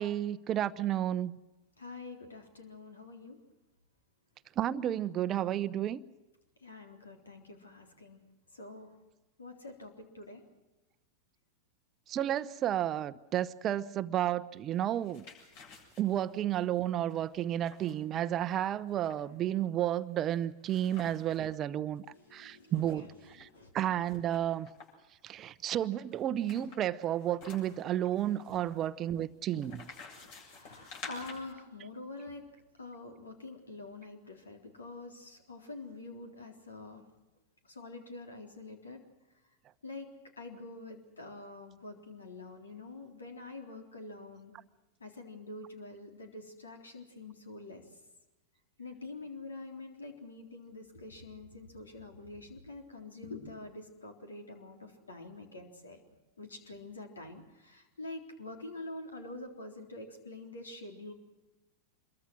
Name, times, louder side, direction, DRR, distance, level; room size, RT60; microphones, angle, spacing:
voice 1, 0.0-1.4 4.6-6.0 12.1-15.2 16.0-22.0 22.3-23.1 23.4-23.5 23.7-24.7 25.2-29.9, right 11 dB, 30° right, 0.9 m, -32 dB
voice 2, 1.8-3.4 6.6-8.2 8.5-8.9 9.4-10.4 22.1-23.7 30.2-32.4 32.8-37.0 37.6-39.0 39.8-40.1 40.4-44.5 45.0-47.8 48.8-56.0 56.4-61.1, left 2 dB, 75° left, 3.8 m, -46 dB
sound 1, 14.8-21.5 21.9-22.0 22.2-23.5 24.0-25.1 25.8-31.5, left 4 dB, 50° left, 7.5 m, -52 dB
26.5 x 22.5 x 6.3 m
figure-of-eight pair, 90°, 0 cm